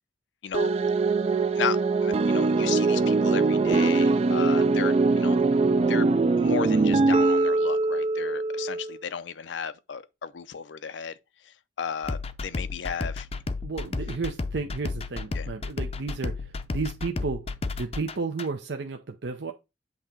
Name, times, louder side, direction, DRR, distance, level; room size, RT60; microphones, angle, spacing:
sound 1, 0.5-9.0, right 3 dB, 35° right, 0.3 m, -22 dB
voice 1, 1.6-5.4 5.9-6.1 6.4-11.1 11.5-13.3 15.3-15.5, left 7 dB, 85° left, 0.5 m, -34 dB
sound 2, 12.0-18.5, left 3 dB, 35° left, 0.5 m, -33 dB
voice 2, 13.6-17.5 17.8-19.5, right 4 dB, 70° right, 0.6 m, -32 dB
7.9 x 2.9 x 5.1 m
head